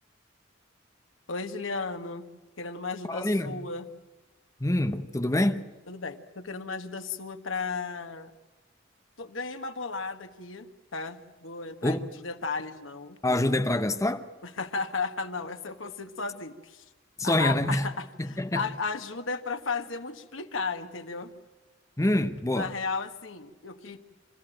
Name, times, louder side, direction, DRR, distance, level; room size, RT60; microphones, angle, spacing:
voice 1, 1.3-2.2 2.6-3.9 5.9-8.3 9.2-13.2 14.4-16.8 17.2-21.3 22.2-24.0, left 4 dB, 90° left, 1.5 m, -35 dB
voice 2, 3.1-3.6 4.6-5.7 11.8-12.0 13.2-14.3 17.2-17.9 18.2-18.6 22.0-22.7, left 1 dB, 15° left, 0.8 m, -26 dB
26.5 x 15.0 x 9.2 m
head